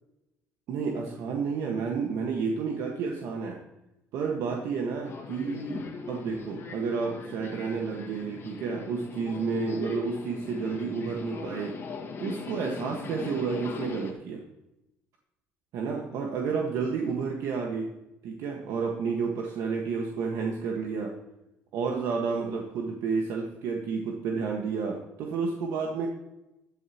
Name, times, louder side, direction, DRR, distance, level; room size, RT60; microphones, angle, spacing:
voice 1, 0.7-3.6 4.1-5.8 6.1-11.8 12.2-14.4 15.7-17.9 18.2-21.1 21.7-26.1, right 5 dB, 70° right, 1 dB, 1.7 m, -31 dB
Subway metro underground, 5.0-14.1, left 5 dB, 45° left, 2.1 m, -39 dB
12.0 x 12.0 x 3.1 m, 0.91 s
supercardioid pair, 85°, 6 cm